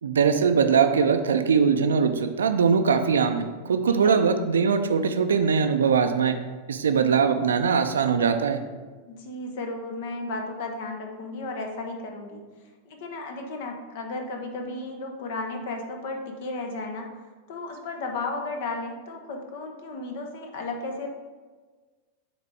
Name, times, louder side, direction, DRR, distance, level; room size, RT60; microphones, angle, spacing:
voice 1, 0.0-6.4 6.7-8.6, right 6 dB, 65° right, 8 dB, 0.5 m, -21 dB
voice 2, 3.9-4.2 9.1-12.4 12.8-17.1 17.5-21.1, left 2 dB, 50° left, 3 dB, 1.0 m, -34 dB
9.9 x 4.1 x 3.4 m, 1.4 s
figure-of-eight pair, 90°, 0 cm